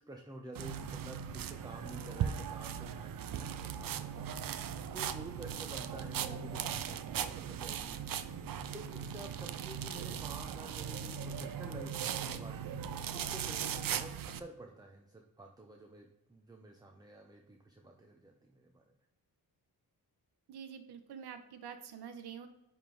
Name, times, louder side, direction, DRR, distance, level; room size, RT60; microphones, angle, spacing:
voice 1, 0.1-18.8, right 1 dB, 10° right, 2 dB, 0.7 m, -51 dB
sound 1, 0.5-14.4, right 8 dB, 60° right, 0.6 m, -39 dB
voice 2, 20.5-22.5, right 7 dB, 85° right, 8 dB, 0.9 m, -47 dB
10.5 x 3.6 x 3.8 m, 0.91 s
wide cardioid pair, 130°, 38 cm